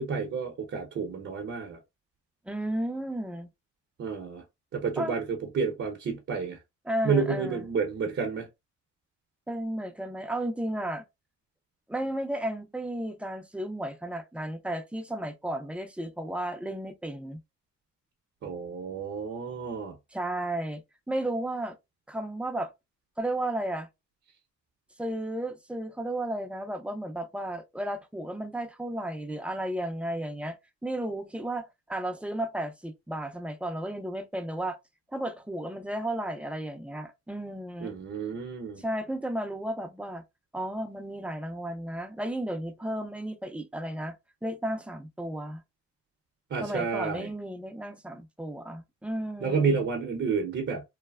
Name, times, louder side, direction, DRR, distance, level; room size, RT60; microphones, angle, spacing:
voice 1, 0.0-1.8 4.0-4.4 4.7-5.2 5.5-6.6 7.0-8.5 18.4-19.9 37.8-38.8 46.5-47.3 49.4-50.8, right 5 dB, 45° right, 0.7 m, -30 dB
voice 2, 2.5-3.5 5.0-5.2 6.8-7.7 9.5-11.0 11.9-17.4 20.1-20.8 21.1-21.8 22.1-22.7 23.2-23.9 25.0-30.6 30.8-34.8 35.1-38.0 38.8-40.2 40.5-44.1 44.4-45.6 46.6-49.8, right 1 dB, 5° right, 0.5 m, -33 dB
3.2 x 2.1 x 2.3 m
cardioid pair, 90°, 30 cm